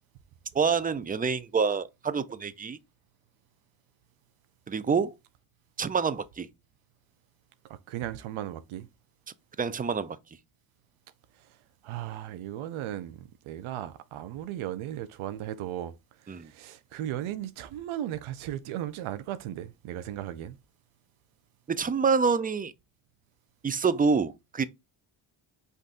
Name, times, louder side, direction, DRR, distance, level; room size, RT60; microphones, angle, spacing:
voice 1, 0.5-2.8 4.7-5.1 5.8-6.5 9.6-10.2 16.3-16.5 21.7-22.7 23.6-24.6, right 5 dB, 20° right, 0.4 m, -27 dB
voice 2, 7.7-8.9 11.4-11.6 11.8-20.6, right 12 dB, 90° right, 0.7 m, -36 dB
5.5 x 2.6 x 3.7 m
cardioid pair, 90°, 47 cm